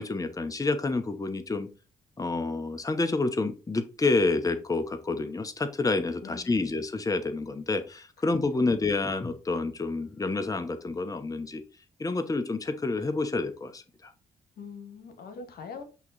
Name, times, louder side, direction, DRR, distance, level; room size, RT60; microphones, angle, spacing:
voice 1, 0.0-1.7 2.2-11.6 12.0-14.1, left 3 dB, 20° left, 0.8 m, -28 dB
voice 2, 6.2-6.7 8.6-8.7 14.6-15.8, left 5 dB, 70° left, 1.3 m, -43 dB
8.1 x 3.0 x 4.0 m
hypercardioid pair, 45°, 17 cm